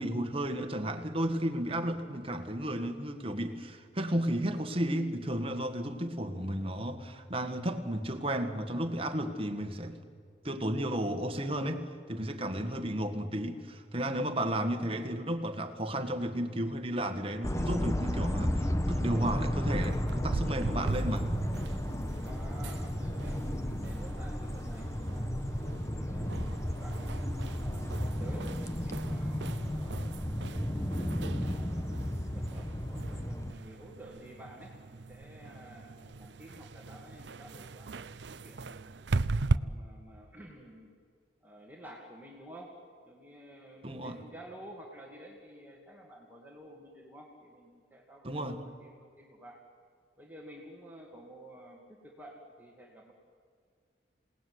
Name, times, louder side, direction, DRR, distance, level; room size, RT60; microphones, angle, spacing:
voice 1, 0.0-10.0 10.4-21.3 43.8-44.2 48.2-48.6, right 1 dB, 30° right, 7 dB, 1.8 m, -33 dB
sound 1, 17.4-33.5, equal, 15° left, 1.1 m, -33 dB
sound 2, 19.8-39.6, right 3 dB, 70° right, 0.6 m, -39 dB
voice 2, 22.2-27.1 27.6-28.5 28.8-32.0 32.3-38.9 39.5-40.9 41.4-42.8 43.0-49.6 50.2-53.1, right 1 dB, 10° right, -1 dB, 2.4 m, -51 dB
28.0 x 18.5 x 9.7 m, 2.1 s
head